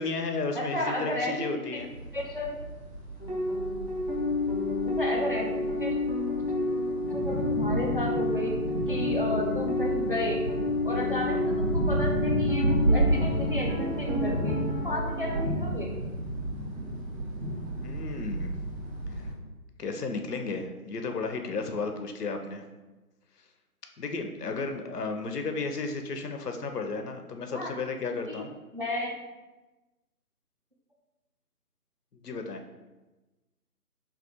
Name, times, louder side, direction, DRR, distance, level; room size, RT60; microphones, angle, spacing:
voice 1, 0.0-1.9 17.8-18.5 19.1-19.3 19.8-22.6 24.0-28.5 32.2-32.6, left 3 dB, 80° left, 5 dB, 0.7 m, -33 dB
voice 2, 0.5-1.8 2.1-2.6 4.8-5.9 7.1-8.6 8.9-10.5 10.8-14.6 14.8-15.9 27.5-27.8 28.3-28.4 28.7-29.1, left 1 dB, 40° right, -2 dB, 0.4 m, -33 dB
sound 1, 1.8-19.3, right 1 dB, 60° right, 1.5 m, -32 dB
sound 2, 3.2-15.4, left 2 dB, 35° left, 0.5 m, -30 dB
3.4 x 2.3 x 4.2 m, 1.1 s
figure-of-eight pair, 150°, 46 cm